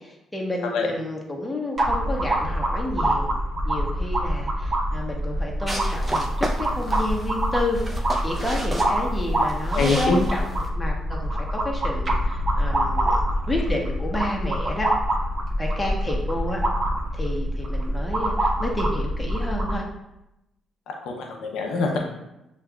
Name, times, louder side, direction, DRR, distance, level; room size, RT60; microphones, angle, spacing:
voice 1, 0.0-3.3 3.6-13.2 13.5-14.9 15.6-16.6 17.1-19.8, left 1 dB, 10° left, -2 dB, 0.9 m, -30 dB
sound 1, 1.8-19.8, equal, 50° right, 0.9 m, -25 dB
sound 2, 5.7-10.7, right 1 dB, 15° right, 0.7 m, -34 dB
voice 2, 9.7-10.2 20.9-22.1, left 3 dB, 85° left, 1 dB, 0.6 m, -24 dB
6.6 x 2.3 x 2.3 m, 0.90 s
cardioid pair, 90°, 0 cm